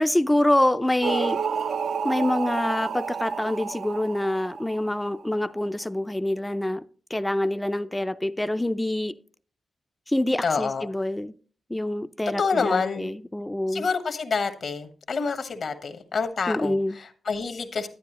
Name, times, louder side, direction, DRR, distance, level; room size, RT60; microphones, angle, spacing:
voice 1, 0.0-1.4 2.0-6.9 7.1-9.2 10.1-11.3 11.7-13.9 16.5-17.0, left 1 dB, 10° left, 0.4 m, -26 dB
sound 1, 1.0-5.2, right 6 dB, 75° right, 0.4 m, -30 dB
voice 2, 10.4-10.9 12.4-13.1 13.7-17.9, left 5 dB, 65° left, 1.2 m, -27 dB
10.5 x 9.4 x 3.0 m
cardioid pair, 60°, 0 cm